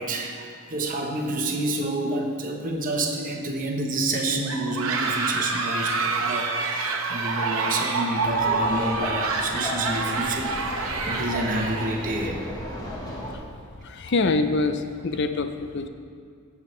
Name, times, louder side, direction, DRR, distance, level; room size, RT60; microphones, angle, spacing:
voice 1, 0.0-12.4, right 2 dB, 35° right, 1 dB, 0.9 m, -29 dB
sound 1, 4.4-12.3, right 3 dB, 65° right, 0.9 m, -27 dB
Laughter, 8.2-13.3, left 1 dB, 15° left, 1.3 m, -35 dB
voice 2, 13.8-15.9, left 3 dB, 50° left, 9 dB, 0.5 m, -25 dB
15.5 x 7.1 x 3.2 m, 2.2 s
head